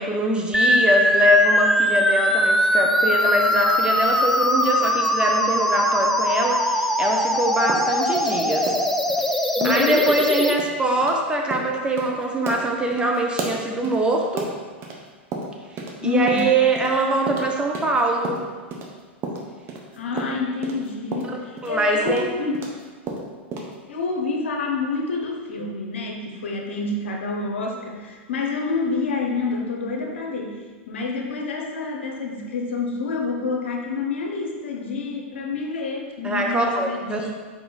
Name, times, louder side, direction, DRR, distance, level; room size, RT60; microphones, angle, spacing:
voice 1, 0.0-8.7 9.6-14.5 16.0-18.4 21.6-22.2 36.2-37.3, right 1 dB, 15° right, 1 dB, 0.8 m, -23 dB
sound 1, 0.5-10.5, equal, 5° left, 0.4 m, -21 dB
sound 2, 7.7-9.2 9.6-9.8 10.1-10.2 10.6-10.7 11.0-11.2 11.5-11.7 12.0-12.1 12.5-15.0 15.3-16.0 16.3-18.9 19.2-22.8 23.1-23.7, right 3 dB, 40° right, 1.0 m, -32 dB
voice 2, 9.6-10.0 16.0-16.5 19.9-22.7 23.9-37.3, left 4 dB, 80° left, 1 dB, 1.0 m, -28 dB
5.0 x 4.8 x 4.0 m, 1.5 s
hypercardioid pair, 105°, 6 cm